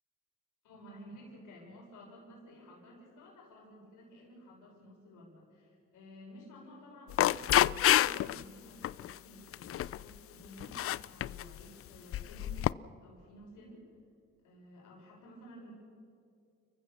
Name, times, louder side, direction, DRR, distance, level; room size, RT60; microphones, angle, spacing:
voice 1, 0.6-13.9 14.4-15.7, equal, 85° left, -2 dB, 6.4 m, -53 dB
sound 1, 7.1-8.4 8.8-9.1 9.5-10.0 10.6-11.5 12.1-12.7, left 12 dB, 50° left, 0.4 m, -28 dB
30.0 x 15.0 x 6.9 m, 2.4 s
cardioid pair, 90°, 30 cm